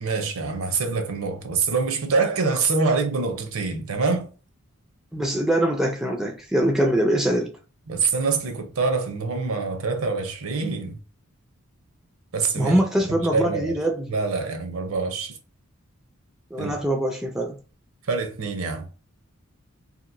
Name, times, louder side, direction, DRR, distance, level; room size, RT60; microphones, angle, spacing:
voice 1, 0.0-4.3 7.9-11.0 12.3-12.8 13.3-13.8 14.1-15.4 16.6-16.7 18.0-18.9, right 4 dB, 75° right, 0.6 m, -25 dB
voice 2, 5.1-7.5 12.6-14.1 16.5-17.6, right 1 dB, ahead, 0.3 m, -23 dB
2.9 x 2.5 x 2.5 m
head